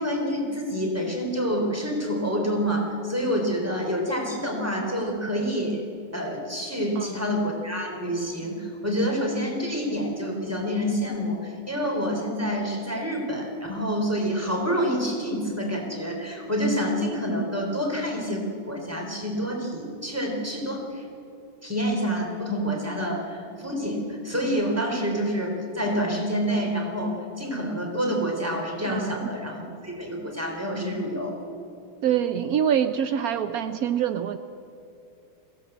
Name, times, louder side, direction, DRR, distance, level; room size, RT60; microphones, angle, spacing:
voice 1, 0.0-5.8 6.1-21.1 21.6-31.4, equal, 5° right, 1 dB, 3.6 m, -27 dB
voice 2, 28.9-29.3 32.0-34.4, right 9 dB, 75° right, 10 dB, 0.8 m, -25 dB
22.0 x 16.0 x 8.0 m, 2.7 s
omnidirectional pair, 2.3 m